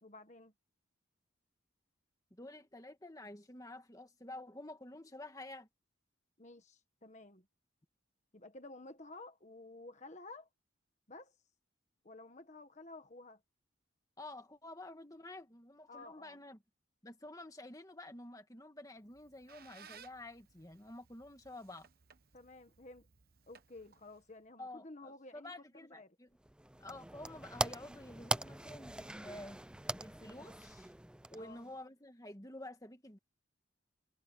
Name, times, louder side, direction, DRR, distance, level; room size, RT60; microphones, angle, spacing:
voice 1, 0.0-0.5 6.4-7.5 8.3-10.5 11.1-11.3 12.0-13.4 15.9-16.4 22.3-23.1 23.5-26.2 31.4-31.7, left 2 dB, 35° left, 1.5 m, -53 dB
voice 2, 2.3-5.7 14.2-16.6 17.0-21.9 24.6-26.3 26.8-29.6 29.9-30.9 31.3-33.2, left 1 dB, 15° left, 1.7 m, -50 dB
Squeak, 19.0-24.4, right 6 dB, 50° right, 1.2 m, -61 dB
sound 1, 26.4-31.8, right 1 dB, 5° right, 0.4 m, -41 dB
head